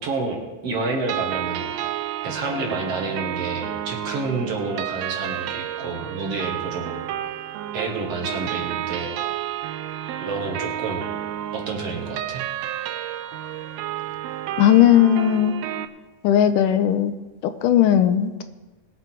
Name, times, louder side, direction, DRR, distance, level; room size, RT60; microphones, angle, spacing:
voice 1, 0.0-1.7 2.2-7.0 7.7-9.1 10.2-11.1 11.5-12.4, right 3 dB, 55° right, 1 dB, 2.3 m, -29 dB
sound 1, 1.1-15.9, right 11 dB, 85° right, 1.5 m, -31 dB
voice 2, 14.6-15.5 16.2-17.1 17.6-18.4, left 10 dB, 85° left, 10 dB, 2.3 m, -17 dB
20.5 x 8.0 x 4.5 m, 1.2 s
omnidirectional pair, 3.7 m